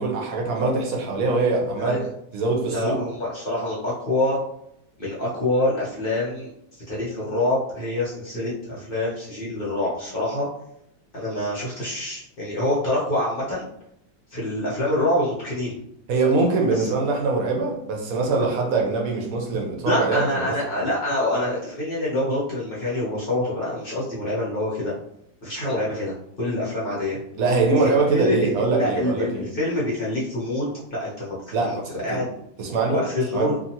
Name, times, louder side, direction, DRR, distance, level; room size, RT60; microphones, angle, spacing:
voice 1, 0.0-2.0 2.3-3.0 16.1-20.2 27.4-29.4 31.5-32.2 32.6-33.0 33.3-33.5, right 3 dB, 75° right, 0 dB, 1.1 m, -23 dB
voice 2, 2.7-4.4 5.0-6.5 6.9-10.5 11.1-13.7 14.3-15.8 16.7-16.9 19.8-24.9 25.4-27.2 27.8-32.3 32.9-33.6, left 1 dB, 45° left, -7 dB, 0.8 m, -26 dB
2.8 x 2.5 x 2.8 m, 0.76 s
omnidirectional pair, 1.6 m